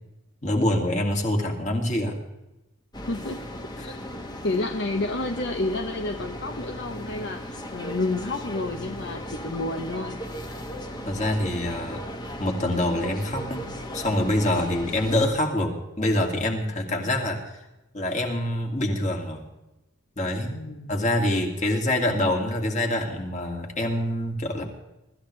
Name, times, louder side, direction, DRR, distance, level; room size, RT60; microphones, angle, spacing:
voice 1, 0.4-2.2 3.8-4.0 11.0-12.1 12.4-17.6 17.9-19.5 20.2-20.6 20.9-24.6, left 1 dB, 35° left, 2 dB, 2.4 m, -25 dB
sound 1, 2.9-15.3, equal, 20° left, 1.4 m, -37 dB
voice 2, 3.1-3.4 3.8-3.9 4.4-10.2 20.5-20.9, left 2 dB, 55° left, 5 dB, 0.9 m, -30 dB
24.0 x 13.5 x 3.3 m, 0.99 s
head